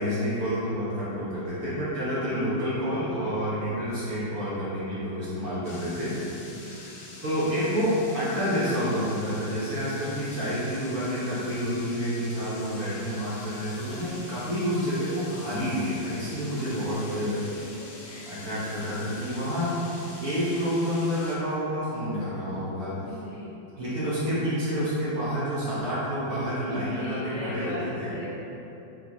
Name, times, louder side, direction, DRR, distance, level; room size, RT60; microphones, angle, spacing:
voice 1, 0.0-6.2 6.6-6.9 7.2-17.4 18.2-19.8 20.2-22.9 23.8-28.2, equal, 55° right, -10 dB, 1.3 m, -29 dB
sound 1, 5.6-21.4, left 2 dB, 65° left, 0.9 m, -45 dB
voice 2, 6.5-6.8 17.1-17.4 17.8-18.3 18.8-18.9 19.2-19.3 23.0-23.5 26.9-27.8 28.1-28.3, left 2 dB, 50° left, -11 dB, 1.5 m, -40 dB
4.8 x 3.1 x 2.8 m, 3.0 s
omnidirectional pair, 2.1 m